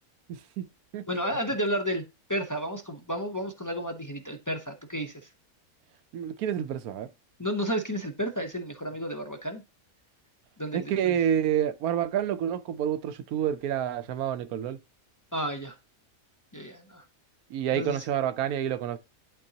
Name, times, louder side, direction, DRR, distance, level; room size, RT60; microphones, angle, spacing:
voice 1, 0.3-0.6 0.9-1.0 6.1-7.1 10.7-14.8 17.5-19.0, right 9 dB, 85° right, 1.1 m, -28 dB
voice 2, 1.1-2.0 2.3-5.1 7.4-9.6 10.6-11.1 15.3-15.7 16.5-17.0 17.7-18.1, equal, 20° left, 0.5 m, -32 dB
11.0 x 3.9 x 2.8 m
omnidirectional pair, 1.5 m